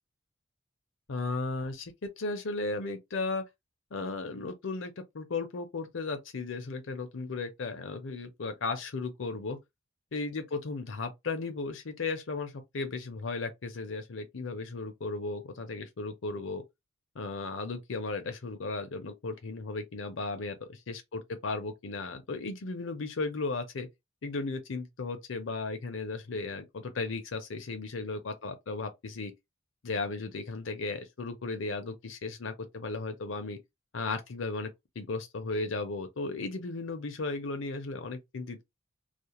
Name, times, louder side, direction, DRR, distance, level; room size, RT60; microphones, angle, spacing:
voice 1, 1.1-3.4 3.9-9.6 10.1-16.6 17.1-23.9 24.2-29.3 29.8-33.6 33.9-34.7 35.0-38.6, left 3 dB, 70° left, 0.6 m, -35 dB
2.4 x 2.0 x 2.9 m
head